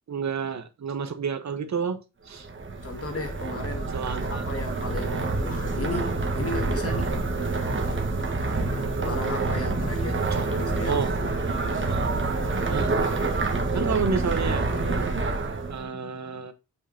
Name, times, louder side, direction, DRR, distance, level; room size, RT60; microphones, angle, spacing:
voice 1, 0.1-2.0 2.3-2.5 3.9-4.4 10.3-10.5 10.9-11.2 11.9-12.1 12.7-13.0 13.7-14.7 15.7-16.5, right 5 dB, 55° right, 1.1 m, -30 dB
sound 1, 2.4-15.8, right 3 dB, 35° right, 1.5 m, -27 dB
voice 2, 2.8-7.3 9.0-11.0, left 2 dB, 45° left, 2.1 m, -35 dB
6.3 x 5.5 x 2.8 m
cardioid pair, 70°, 32 cm